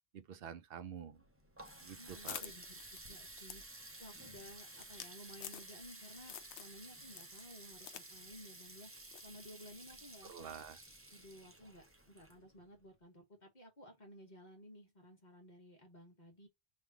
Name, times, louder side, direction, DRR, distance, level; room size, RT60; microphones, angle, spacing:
voice 1, 0.1-1.2 1.8-2.5 10.3-10.8, right 8 dB, 65° right, 0.7 m, -48 dB
Water tap faucet, 1.1-12.8, right 2 dB, 15° right, 0.6 m, -54 dB
sound 1, 1.6-6.0 6.3-6.8 7.1-8.1 8.3-8.4 9.1-9.3, left 10 dB, 75° left, 0.8 m, -49 dB
voice 2, 2.0-3.7 4.0-8.9 9.2-10.5 11.1-16.5, equal, 40° left, 1.1 m, -56 dB
3.5 x 2.5 x 4.5 m
omnidirectional pair, 1.2 m